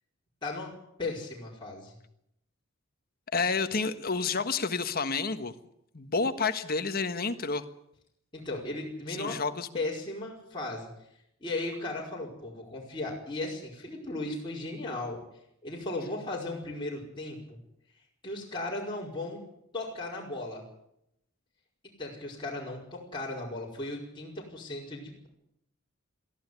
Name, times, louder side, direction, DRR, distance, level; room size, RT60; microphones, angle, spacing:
voice 1, 0.4-0.7 1.0-2.0 8.3-9.4 9.7-10.9 11.4-15.2 15.6-17.6 18.2-19.4 19.7-20.6 22.0-25.3, left 2 dB, 25° left, -4 dB, 5.0 m, -36 dB
voice 2, 3.3-5.5 5.9-7.6 9.1-9.7, left 4 dB, 45° left, 9 dB, 1.5 m, -29 dB
22.5 x 14.5 x 9.6 m, 0.79 s
head